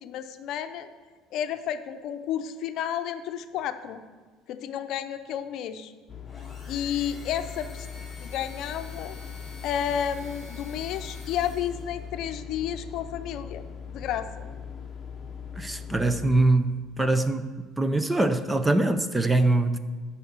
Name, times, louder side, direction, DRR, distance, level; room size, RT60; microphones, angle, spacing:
voice 1, 0.0-0.9 1.3-4.0 4.5-5.9 6.7-7.9 8.2-9.2 9.6-13.6 13.9-14.5, left 9 dB, 60° left, 0.6 m, -31 dB
sound 1, 6.1-16.5, left 7 dB, 30° left, 0.9 m, -40 dB
sound 2, 6.2-12.1, left 2 dB, 10° left, 3.5 m, -48 dB
voice 2, 15.6-17.5 17.8-19.8, right 2 dB, 10° right, 0.5 m, -23 dB
10.5 x 5.7 x 7.2 m
cardioid pair, 130°, 0 cm